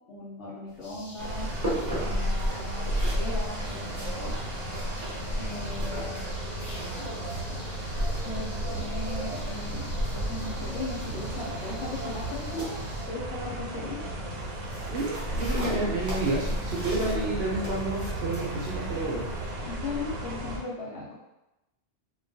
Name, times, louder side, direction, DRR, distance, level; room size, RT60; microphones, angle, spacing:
voice 1, 0.1-1.5 1.8-4.3 5.3-7.2 7.5-7.6 8.2-9.9 10.1-12.8 13.1-14.0 19.6-21.1, left 2 dB, 70° left, -6 dB, 0.9 m, -38 dB
sound 1, 0.7-19.5, right 1 dB, 20° right, 0.5 m, -41 dB
sound 2, 0.8-13.1, left 1 dB, 45° left, 0.5 m, -47 dB
sound 3, 1.2-20.6, right 1 dB, 85° right, 1.0 m, -33 dB
voice 2, 14.9-19.2, right 2 dB, 65° right, -3 dB, 0.7 m, -30 dB
2.3 x 2.2 x 2.6 m, 0.95 s
omnidirectional pair, 1.3 m